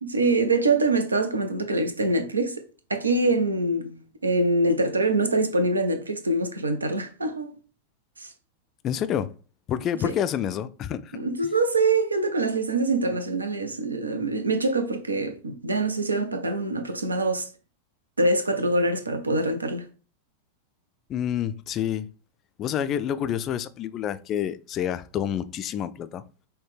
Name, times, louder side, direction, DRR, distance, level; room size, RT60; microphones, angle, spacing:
voice 1, 0.0-2.6 2.9-7.5 8.2-8.3 10.0-10.1 11.1-17.5 18.2-19.9, right 2 dB, 80° right, 0.6 m, -24 dB
voice 2, 8.8-9.3 9.7-11.1 21.1-22.1 22.6-26.2, left 10 dB, 30° left, 0.3 m, -28 dB
5.7 x 2.2 x 3.2 m
figure-of-eight pair, 90°, 0 cm